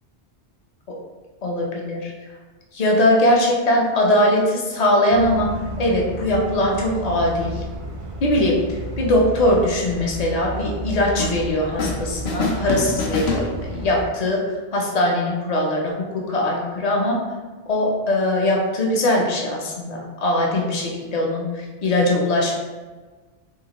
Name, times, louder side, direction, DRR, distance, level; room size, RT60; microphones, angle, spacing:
voice 1, 1.4-2.1 2.7-5.5 5.8-7.6 8.2-8.6 9.0-14.4 14.7-17.2 17.7-22.6, left 1 dB, 45° left, -2 dB, 0.7 m, -21 dB
sound 1, 5.1-14.1, equal, 60° right, 0.3 m, -32 dB
sound 2, 11.2-12.0 12.3-14.0, left 3 dB, 90° left, 0.9 m, -26 dB
3.7 x 2.4 x 2.9 m, 1.3 s
omnidirectional pair, 1.0 m